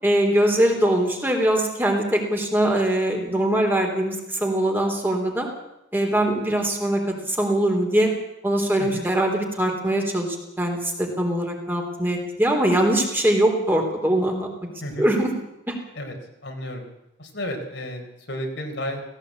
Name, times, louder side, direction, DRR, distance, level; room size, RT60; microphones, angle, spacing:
voice 1, 0.0-5.5 5.9-8.1 8.4-14.5 15.0-15.3 15.7-15.8, right 1 dB, 10° right, 2 dB, 3.5 m, -22 dB
voice 2, 16.4-16.8 17.2-19.0, equal, 70° left, 3 dB, 4.1 m, -32 dB
17.5 x 17.0 x 8.5 m, 0.87 s
head